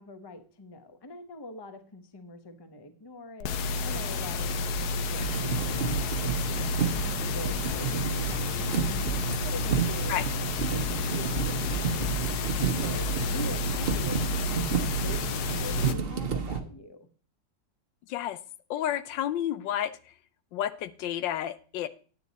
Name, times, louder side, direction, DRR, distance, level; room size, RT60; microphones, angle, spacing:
voice 1, 0.0-9.1 9.4-12.2 12.6-17.1, left 2 dB, 20° left, 9 dB, 0.6 m, -44 dB
sound 1, 3.4-15.9, left 3 dB, 65° left, 1.1 m, -31 dB
sound 2, 5.1-16.6, right 6 dB, 45° right, 0.8 m, -31 dB
voice 2, 18.7-20.0 20.5-21.9, left 11 dB, 80° left, 15 dB, 1.3 m, -30 dB
9.3 x 9.2 x 4.1 m, 0.40 s
omnidirectional pair, 2.0 m